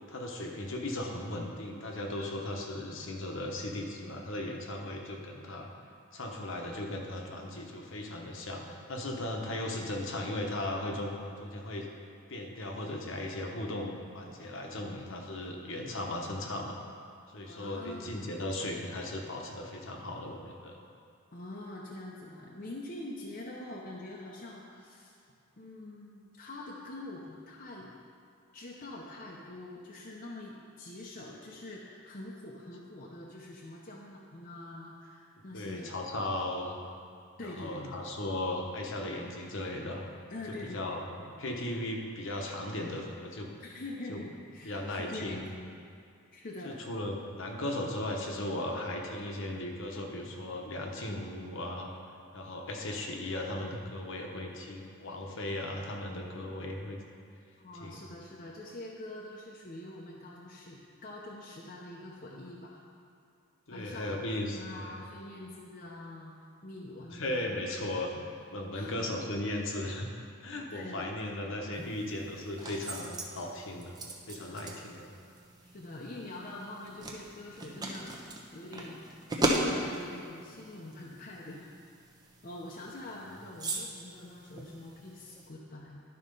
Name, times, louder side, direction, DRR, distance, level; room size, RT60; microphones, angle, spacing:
voice 1, 0.1-5.7 6.1-8.6 8.9-11.1 11.4-11.9 12.3-16.7 17.3-20.8 35.5-36.7 37.4-40.0 40.6-41.0 41.4-43.5 44.1-44.2 44.6-45.5 46.6-51.9 52.3-57.0 57.8-58.0 63.7-65.0 67.1-68.2 68.5-70.1 70.4-74.0 74.3-75.1, left 1 dB, 60° left, 1 dB, 1.0 m, -37 dB
voice 2, 17.4-18.4 21.3-25.2 25.6-27.9 28.5-35.9 37.4-37.9 40.3-41.3 43.6-45.8 46.3-46.8 55.3-55.4 57.6-62.8 63.7-66.3 66.6-67.5 68.7-69.1 70.7-71.1 71.4-71.5 74.4-74.6 75.6-79.1 79.6-81.7 82.4-86.0, left 2 dB, 40° left, -3 dB, 0.7 m, -45 dB
sound 1, 71.7-85.5, right 1 dB, 20° right, 0.8 m, -38 dB
11.5 x 4.3 x 5.4 m, 2.5 s
head